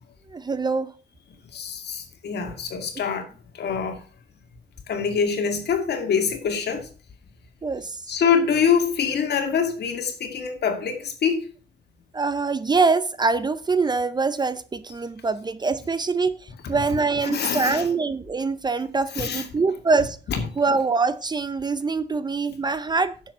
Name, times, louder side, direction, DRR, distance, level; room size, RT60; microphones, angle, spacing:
voice 1, 0.3-0.9 7.6-8.0 12.1-16.4 16.7-20.2 20.6-23.1, right 4 dB, 25° right, 0.6 m, -24 dB
voice 2, 1.5-3.2 3.6-4.0 4.9-6.9 8.1-11.4 17.2-17.9 19.2-19.4 20.3-20.4, left 6 dB, 65° left, 2.2 m, -24 dB
10.5 x 7.5 x 4.7 m
wide cardioid pair, 165°, 18 cm